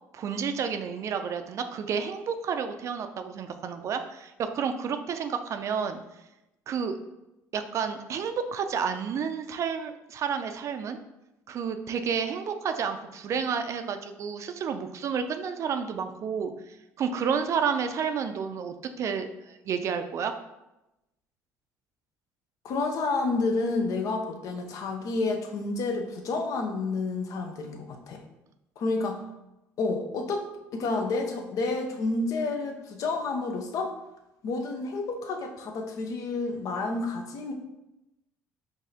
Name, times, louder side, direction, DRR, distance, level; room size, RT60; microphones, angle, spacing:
voice 1, 0.1-6.0 6.7-7.0 7.5-11.0 11.5-20.3, right 6 dB, 50° right, 8 dB, 0.4 m, -30 dB
voice 2, 22.6-28.2 28.8-29.2 29.8-30.5 30.7-33.9 34.4-37.5, left 3 dB, 60° left, 4 dB, 0.6 m, -30 dB
4.8 x 2.6 x 2.8 m, 0.94 s
supercardioid pair, 80°, 6 cm